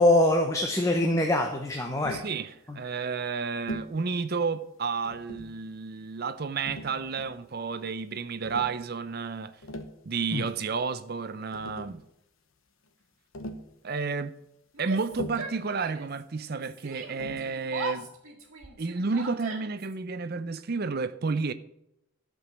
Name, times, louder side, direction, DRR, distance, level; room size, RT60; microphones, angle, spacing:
voice 1, 0.0-2.2 10.3-10.4, left 1 dB, 15° left, 0.8 m, -23 dB
Tap, 2.0-2.4 3.7-4.0 5.0-5.6 6.7-7.4 8.4-8.8 9.5-10.0 11.2-11.3 11.5-12.0 13.3-13.7 15.1-15.6 17.2-17.5, equal, 70° left, 1.1 m, -40 dB
voice 2, 2.1-9.5 10.0-12.0 13.8-14.4 14.8-18.1 18.8-21.5, right 4 dB, 45° right, 0.5 m, -31 dB
Yell, 14.7-16.2 16.5-19.9, right 3 dB, 70° right, 2.1 m, -40 dB
12.5 x 5.2 x 7.4 m
head